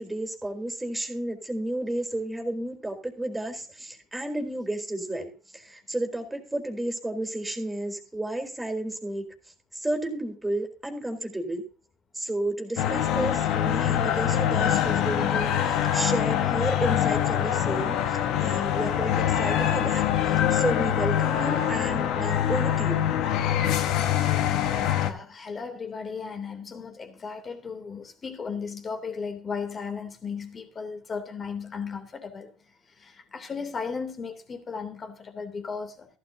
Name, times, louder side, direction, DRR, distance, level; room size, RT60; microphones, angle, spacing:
voice 1, 0.0-5.3 5.7-9.2 9.8-11.6 12.2-15.6 15.9-18.0 18.4-19.1 19.4-20.0 20.5-23.0, right 1 dB, 10° right, 4.0 m, -31 dB
sound 1, 12.8-25.1, left 10 dB, 65° left, 1.5 m, -24 dB
voice 2, 24.2-32.5 33.0-36.1, left 5 dB, 35° left, 3.0 m, -36 dB
15.0 x 12.0 x 2.8 m
supercardioid pair, 80°, 0 cm